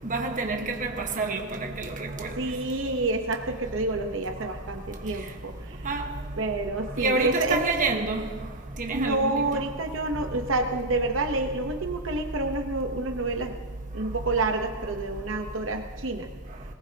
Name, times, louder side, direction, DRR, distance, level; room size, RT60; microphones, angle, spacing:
voice 1, 0.0-1.4 1.8-2.3 5.8-6.1 7.0-8.2 8.8-9.6, right 3 dB, 40° right, 1.3 m, -28 dB
voice 2, 2.4-5.9 6.4-7.6 8.9-13.5 13.9-16.3, right 2 dB, 75° right, 1.0 m, -28 dB
21.0 x 19.0 x 2.9 m
head